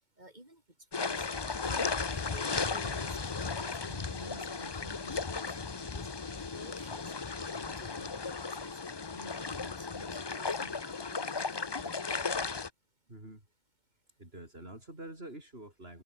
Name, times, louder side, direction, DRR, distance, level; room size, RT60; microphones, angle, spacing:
voice 1, 0.2-0.6 1.0-1.3 1.6-6.1 6.5-7.1 7.5-8.8 9.1-11.9, right 1 dB, 35° right, 7.4 m, -53 dB
sound 1, 0.9-12.7, left 4 dB, 25° left, 0.6 m, -35 dB
voice 2, 13.1-13.4 14.2-16.0, right 1 dB, 50° right, 6.4 m, -47 dB
open air
omnidirectional pair, 1.3 m